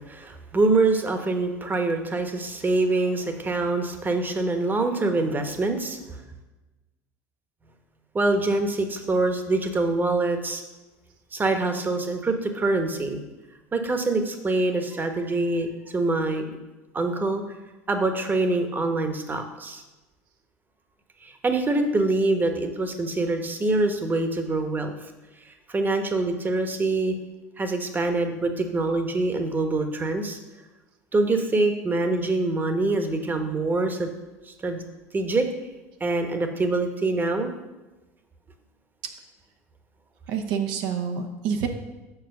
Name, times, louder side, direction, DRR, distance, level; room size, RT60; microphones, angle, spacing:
voice 1, 0.0-6.2 8.1-10.6 11.3-13.2 13.7-16.5 16.9-17.4 17.9-19.8 21.2-24.9 25.4-27.1 27.6-30.4 31.1-34.1 34.5-34.8 35.1-35.5 36.0-37.5, right 2 dB, 25° right, 6 dB, 1.2 m, -25 dB
voice 2, 40.3-41.7, right 7 dB, 60° right, 5 dB, 0.9 m, -27 dB
6.2 x 4.8 x 6.5 m, 1.1 s
hypercardioid pair, 75°, 8 cm